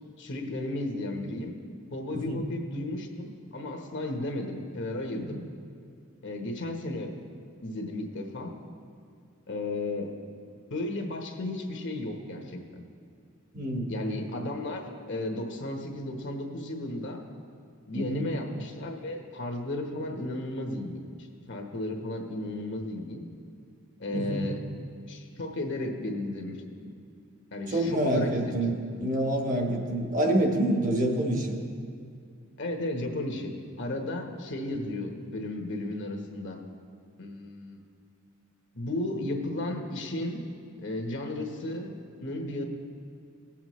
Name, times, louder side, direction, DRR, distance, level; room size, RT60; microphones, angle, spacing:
voice 1, 0.2-1.5 1.9-5.4 6.2-7.2 7.6-8.6 9.5-10.1 10.7-12.6 13.9-17.2 17.9-21.0 21.5-23.2 24.0-24.6 25.1-26.9 27.5-28.6 32.6-36.6 37.2-37.8 38.7-40.4 40.8-41.9 42.2-42.7, left 1 dB, 60° left, 2 dB, 1.1 m, -34 dB
voice 2, 2.1-2.4 5.1-5.2 13.5-13.9 17.9-18.3 24.1-24.5 27.7-31.5 34.7-34.8, right 1 dB, 40° right, 2 dB, 1.1 m, -27 dB
18.0 x 7.3 x 3.1 m, 2.4 s
head